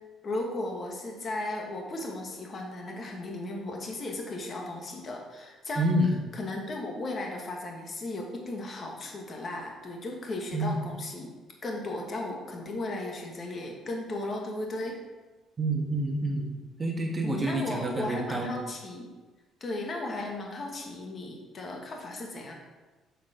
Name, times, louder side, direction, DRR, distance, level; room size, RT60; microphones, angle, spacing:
voice 1, 0.2-5.8 6.3-11.3 11.6-15.0 17.2-19.1 19.6-22.6, left 2 dB, 30° left, 1 dB, 1.5 m, -36 dB
voice 2, 5.8-6.1 10.5-10.8 15.6-16.5 16.8-18.6, right 1 dB, 20° right, 0 dB, 1.5 m, -28 dB
7.1 x 6.9 x 5.0 m, 1.3 s
cardioid pair, 150°, 0 cm